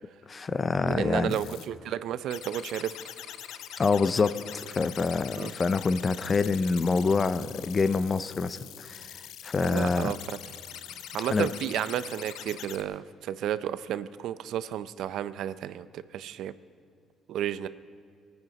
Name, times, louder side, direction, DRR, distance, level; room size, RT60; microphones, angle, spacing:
voice 1, 0.3-1.4 3.8-9.1 9.4-10.1 11.3-11.5, left 4 dB, 30° left, 14 dB, 0.5 m, -26 dB
voice 2, 0.8-2.9 5.3-5.5 9.6-10.4 11.1-16.5 17.3-17.7, right 10 dB, 70° right, 15 dB, 0.5 m, -32 dB
sound 1, 1.3-1.7 2.3-12.8, left 10 dB, 75° left, 0.7 m, -43 dB
21.5 x 9.4 x 5.3 m, 2.2 s
cardioid pair, 125°, 0 cm